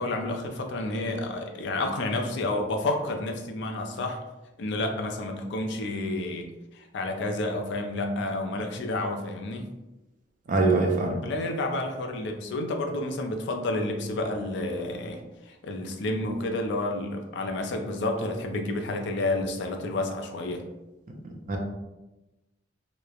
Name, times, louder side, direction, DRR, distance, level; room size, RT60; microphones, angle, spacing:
voice 1, 0.0-4.2 4.6-6.4 6.7-9.6 11.2-15.2 15.5-20.6, left 2 dB, 60° left, 3 dB, 0.4 m, -30 dB
voice 2, 10.5-11.2 21.5-21.6, right 3 dB, 40° right, 2 dB, 0.4 m, -23 dB
2.9 x 2.0 x 2.3 m, 1.0 s
head